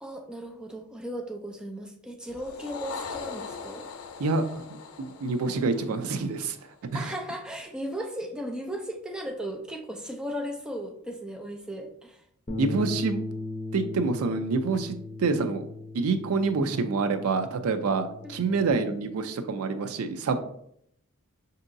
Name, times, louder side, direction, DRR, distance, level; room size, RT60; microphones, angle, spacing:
voice 1, 0.0-3.9 6.9-12.2 18.2-18.9, equal, 5° right, 2 dB, 0.3 m, -36 dB
sound 1, 2.3-6.9, left 5 dB, 85° left, 0.5 m, -41 dB
voice 2, 4.2-6.6 6.8-7.1 12.6-13.2 13.7-15.7 15.9-20.4, right 4 dB, 85° right, 9 dB, 0.4 m, -27 dB
Bass guitar, 12.5-18.7, left 2 dB, 25° left, 0.7 m, -37 dB
5.2 x 2.7 x 2.5 m, 0.71 s
head